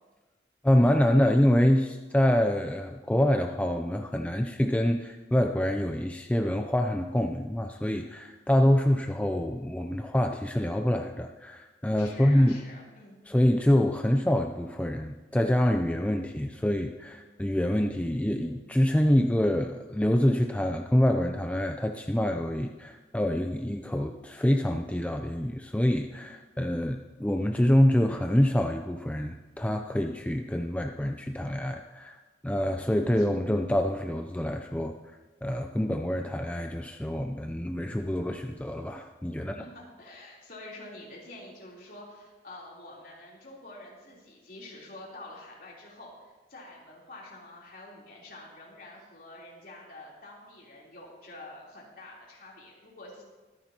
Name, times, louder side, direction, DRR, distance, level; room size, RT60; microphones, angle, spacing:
voice 1, 0.6-12.5 13.3-35.0 35.4-39.6, left 1 dB, 10° left, 4 dB, 0.4 m, -26 dB
voice 2, 11.9-13.2 33.2-33.3 39.4-53.2, left 2 dB, 50° left, -4 dB, 3.5 m, -47 dB
24.0 x 10.5 x 2.9 m, 1.2 s
head